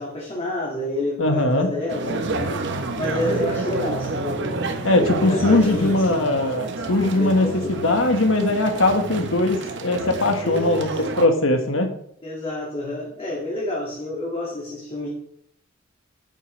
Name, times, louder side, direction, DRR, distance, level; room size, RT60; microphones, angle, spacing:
voice 1, 0.0-6.3 7.1-7.8 10.4-11.0 12.2-15.1, left 1 dB, 30° left, -4 dB, 2.0 m, -29 dB
voice 2, 1.2-1.7 4.8-11.9, left 2 dB, 70° left, 5 dB, 1.5 m, -20 dB
sound 1, 1.9-11.3, right 3 dB, 60° right, 1.0 m, -29 dB
9.5 x 9.3 x 3.3 m, 0.71 s
head